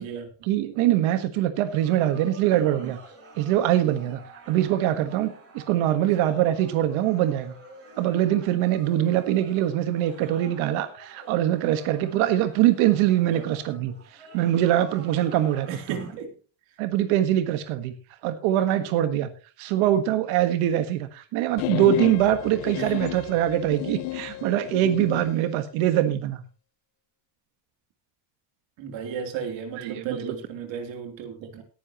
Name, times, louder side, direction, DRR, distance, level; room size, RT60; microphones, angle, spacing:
voice 1, 0.4-3.0 3.4-4.2 4.5-7.5 8.0-15.7 16.8-17.9 18.2-19.3 19.6-26.4 29.8-30.3, right 12 dB, 85° right, 1.5 m, -23 dB
sound 1, 1.7-16.1, right 3 dB, 30° right, 7.9 m, -48 dB
voice 2, 15.7-16.3 22.7-22.9 28.8-31.6, right 6 dB, 65° right, 3.3 m, -34 dB
sound 2, 21.6-25.3, left 20 dB, 90° left, 0.9 m, -32 dB
18.5 x 10.0 x 3.0 m
cardioid pair, 155°, 48 cm